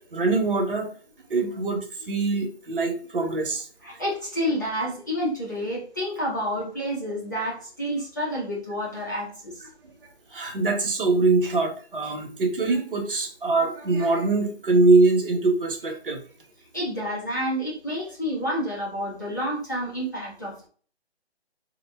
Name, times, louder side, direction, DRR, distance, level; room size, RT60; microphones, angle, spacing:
voice 1, 0.1-0.9 1.3-3.6 10.3-16.2, right 3 dB, 55° right, 3 dB, 1.1 m, -23 dB
voice 2, 3.8-9.6 16.7-20.7, equal, 15° left, -7 dB, 0.5 m, -29 dB
3.9 x 2.2 x 3.4 m, 0.42 s
figure-of-eight pair, 160°, 33 cm